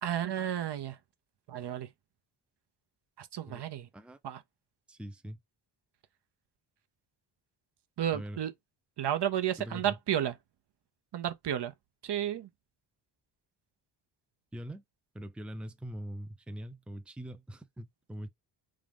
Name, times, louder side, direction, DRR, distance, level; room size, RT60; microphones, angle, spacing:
voice 1, 0.0-1.0 1.5-1.9 3.2-3.9 4.2-4.4 8.0-8.5 9.0-10.3 11.1-11.7 12.0-12.5, right 10 dB, 55° right, 0.8 m, -32 dB
voice 2, 4.9-5.4 8.1-8.4 9.6-10.0 14.5-14.8 15.1-18.3, equal, ahead, 0.7 m, -42 dB
3.8 x 2.4 x 3.4 m
supercardioid pair, 55°, 50 cm